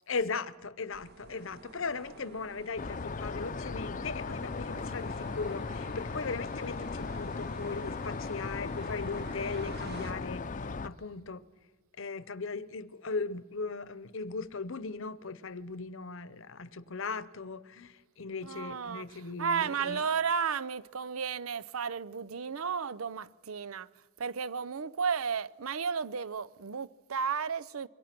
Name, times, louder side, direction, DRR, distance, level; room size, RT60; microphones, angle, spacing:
voice 1, 0.1-10.5 10.8-11.4 12.0-20.0, left 4 dB, 65° left, 0.9 m, -38 dB
sound 1, 0.9-10.1, right 3 dB, 50° right, 2.1 m, -50 dB
sound 2, 2.8-10.9, left 4 dB, 40° left, 0.6 m, -37 dB
voice 2, 18.4-23.9 24.2-27.9, right 6 dB, 90° right, 0.7 m, -33 dB
26.0 x 23.0 x 6.0 m
head